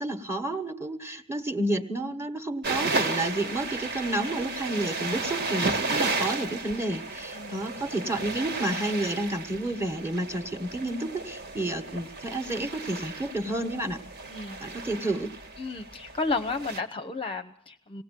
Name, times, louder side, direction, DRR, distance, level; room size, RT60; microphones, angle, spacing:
voice 1, 0.0-14.0 14.6-15.3, right 1 dB, 10° right, 8 dB, 1.4 m, -30 dB
sound 1, 2.6-16.8, right 3 dB, 50° right, 1.7 m, -33 dB
voice 2, 14.3-14.6 15.6-18.0, left 3 dB, 25° left, 6 dB, 0.8 m, -33 dB
19.5 x 17.5 x 7.6 m, 0.64 s
head